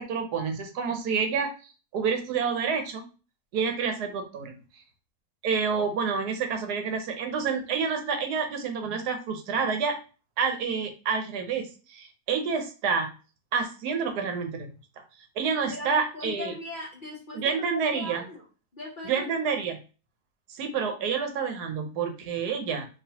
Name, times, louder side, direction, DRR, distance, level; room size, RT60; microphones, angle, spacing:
voice 1, 0.0-1.5 1.9-3.0 3.5-4.6 5.4-10.0 10.4-13.1 13.5-14.7 15.4-16.5 17.3-18.2 19.0-19.8 20.5-22.9, right 5 dB, 75° right, 5 dB, 1.2 m, -28 dB
voice 2, 15.7-18.5 18.7-19.5, left 2 dB, 40° left, -3 dB, 0.8 m, -39 dB
4.0 x 2.9 x 2.8 m, 0.35 s
omnidirectional pair, 1.8 m